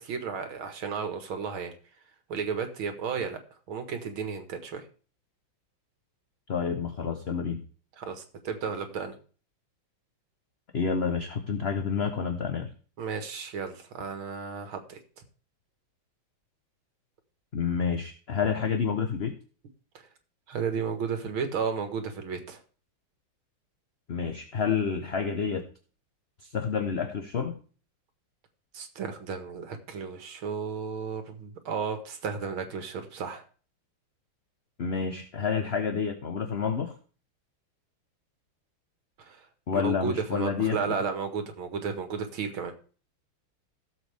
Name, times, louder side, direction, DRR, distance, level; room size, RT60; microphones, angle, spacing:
voice 1, 0.0-1.7 2.3-3.4 3.7-4.8 8.0-9.1 13.0-15.0 20.5-22.6 28.7-33.4 39.2-39.4 39.7-42.7, right 6 dB, 90° right, 7 dB, 2.4 m, -33 dB
voice 2, 6.5-7.6 10.7-12.7 17.5-19.3 24.1-25.6 26.4-27.6 34.8-36.9 39.7-40.8, left 6 dB, 45° left, 6 dB, 0.9 m, -29 dB
16.0 x 7.4 x 3.5 m, 0.39 s
omnidirectional pair, 2.2 m